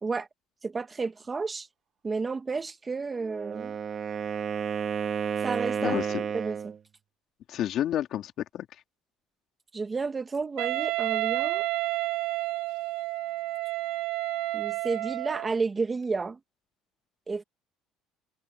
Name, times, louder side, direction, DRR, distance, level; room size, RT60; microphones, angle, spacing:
voice 1, 0.6-1.7 2.0-3.7 5.4-6.7 9.7-11.7 14.5-16.4 17.3-17.4, right 4 dB, 20° right, 1.7 m, -31 dB
Wind instrument woodwind instrument, 3.2-6.8, right 7 dB, 35° right, 2.0 m, -31 dB
voice 2, 5.8-6.2 7.5-8.7, left 11 dB, 55° left, 2.9 m, -30 dB
Wind instrument woodwind instrument 2, 10.6-15.6, right 20 dB, 80° right, 0.3 m, -30 dB
cardioid pair, 120°, 0 cm